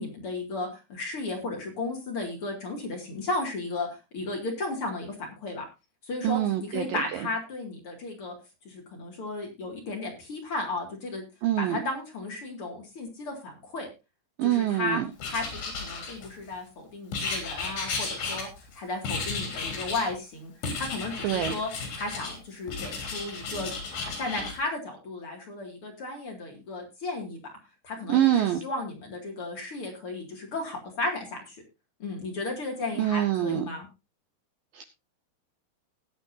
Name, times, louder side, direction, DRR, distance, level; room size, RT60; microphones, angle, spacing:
voice 1, 0.0-3.9 4.1-5.1 5.4-5.6 6.1-8.3 8.6-11.2 11.6-13.9 14.4-15.0 15.3-18.5 18.7-27.4 27.8-31.6 32.0-33.9, left 2 dB, 40° left, 1 dB, 2.4 m, -34 dB
voice 2, 6.2-7.3 11.4-11.8 14.4-15.1 21.2-21.6 28.1-28.6 33.0-33.7 34.7-34.8, right 12 dB, 85° right, 8 dB, 1.9 m, -25 dB
Writing, 15.2-16.5 17.1-18.7 19.0-20.1 20.6-22.4 22.7-24.5, left 4 dB, 80° left, 5.4 m, -34 dB
19.0 x 8.2 x 2.7 m, 0.27 s
omnidirectional pair, 4.9 m